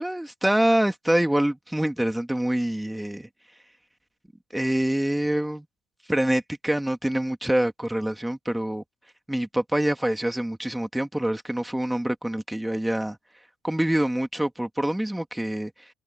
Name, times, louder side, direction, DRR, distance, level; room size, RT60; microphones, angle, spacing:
voice 1, 0.0-3.3 4.5-5.6 6.1-8.8 9.3-13.2 13.6-15.9, right 1 dB, 5° right, 3.2 m, -25 dB
hypercardioid pair, 55°, 0 cm